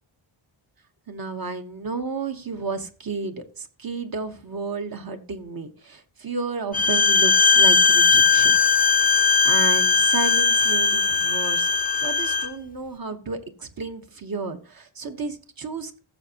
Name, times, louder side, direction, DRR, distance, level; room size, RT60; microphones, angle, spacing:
voice 1, 1.1-8.5 9.4-16.0, right 4 dB, 45° right, 6 dB, 1.1 m, -32 dB
Bowed string instrument, 6.7-12.5, left 5 dB, 20° left, 0.5 m, -19 dB
15.5 x 7.0 x 2.8 m, 0.40 s
wide cardioid pair, 180°, 49 cm